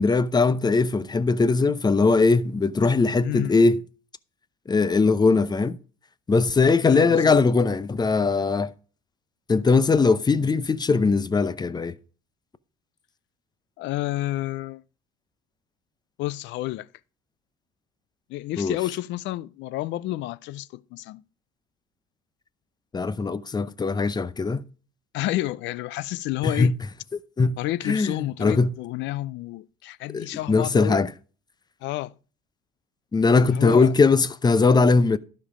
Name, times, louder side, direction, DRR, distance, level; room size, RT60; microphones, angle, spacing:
voice 1, 0.0-3.8 4.7-5.8 6.3-8.7 9.5-11.9 18.6-18.8 22.9-24.6 26.4-26.7 27.1-27.6 27.8-28.7 30.1-31.1 33.1-35.2, left 4 dB, 20° left, 0.7 m, -20 dB
voice 2, 3.2-3.6 6.9-7.3 13.8-14.8 16.2-16.9 18.3-21.2 25.1-26.7 27.6-31.1 31.8-32.1 33.4-33.9 35.1-35.2, left 16 dB, 65° left, 0.5 m, -30 dB
12.5 x 5.4 x 4.9 m
supercardioid pair, 85°, 20 cm